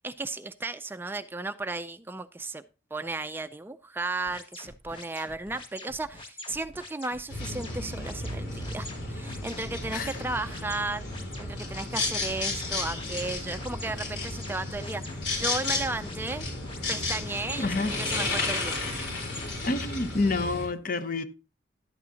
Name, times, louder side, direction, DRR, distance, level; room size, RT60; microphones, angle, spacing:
voice 1, 0.0-2.6 2.9-11.1 11.4-15.1 15.4-16.5 16.9-18.8, right 2 dB, 10° right, 0.4 m, -34 dB
sound 1, 4.3-19.6, left 2 dB, 30° left, 1.7 m, -45 dB
sound 2, 7.3-20.7, left 3 dB, 80° left, 4.2 m, -33 dB
voice 2, 17.6-17.9 19.6-21.2, left 3 dB, 50° left, 0.9 m, -28 dB
11.5 x 8.9 x 2.8 m
head